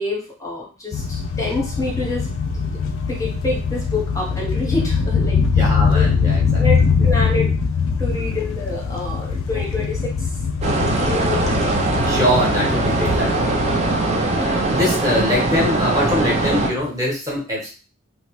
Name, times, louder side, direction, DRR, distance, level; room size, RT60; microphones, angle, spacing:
voice 1, 0.0-2.3 2.5-2.7 3.1-5.6 5.9-6.1 6.6-7.5 8.0-10.3 11.0-11.5 14.1-14.5, left 2 dB, 15° left, -3 dB, 0.8 m, -27 dB
sound 1, 0.9-14.7, left 5 dB, 80° left, 0.4 m, -22 dB
voice 2, 5.3-6.9 7.3-7.5 8.1-8.4 11.1-11.4 12.0-13.7 14.3-17.7, left 1 dB, 15° right, -4 dB, 0.9 m, -23 dB
sound 2, 10.6-16.7, right 2 dB, 35° right, 0.4 m, -21 dB
2.8 x 2.0 x 2.9 m, 0.36 s
head